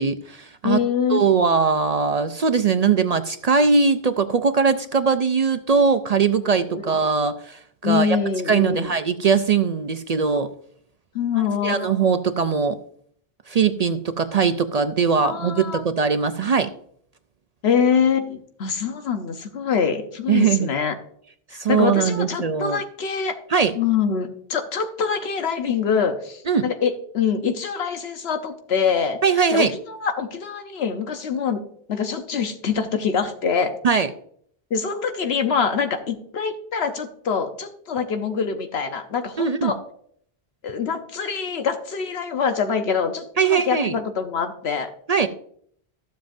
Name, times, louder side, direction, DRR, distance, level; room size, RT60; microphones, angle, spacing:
voice 1, 0.0-0.8 1.1-8.2 8.5-10.5 11.4-12.8 13.5-16.7 20.3-20.7 21.5-22.8 23.5-23.7 26.5-26.7 29.2-29.7 33.8-34.1 39.4-39.7 43.4-44.0 45.1-45.3, right 5 dB, 50° right, 10 dB, 0.5 m, -20 dB
voice 2, 0.6-1.2 6.7-6.9 7.8-8.9 11.1-12.0 15.2-15.8 17.6-20.9 21.7-23.4 23.8-29.2 29.5-31.6 31.9-33.7 34.7-39.8 40.6-44.9, left 6 dB, 85° left, 6 dB, 1.1 m, -24 dB
13.5 x 7.4 x 2.6 m, 0.63 s
omnidirectional pair, 1.0 m